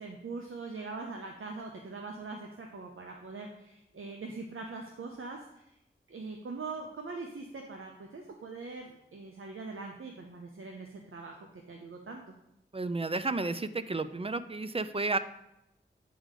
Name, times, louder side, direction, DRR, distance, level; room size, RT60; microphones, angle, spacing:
voice 1, 0.0-5.6 6.1-11.3 11.7-12.2, right 3 dB, 85° right, 2 dB, 0.7 m, -42 dB
voice 2, 12.7-15.2, right 3 dB, 30° right, 12 dB, 0.4 m, -32 dB
8.6 x 3.7 x 4.9 m, 0.85 s
wide cardioid pair, 45°, 21 cm